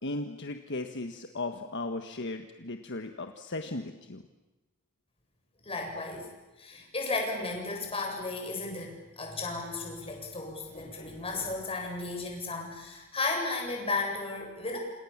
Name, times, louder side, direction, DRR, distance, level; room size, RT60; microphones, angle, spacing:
voice 1, 0.0-4.2, left 2 dB, 55° left, 6 dB, 1.5 m, -36 dB
voice 2, 5.6-6.3 6.6-14.8, left 3 dB, 25° left, 1 dB, 7.8 m, -34 dB
28.5 x 28.0 x 7.4 m, 1.1 s
head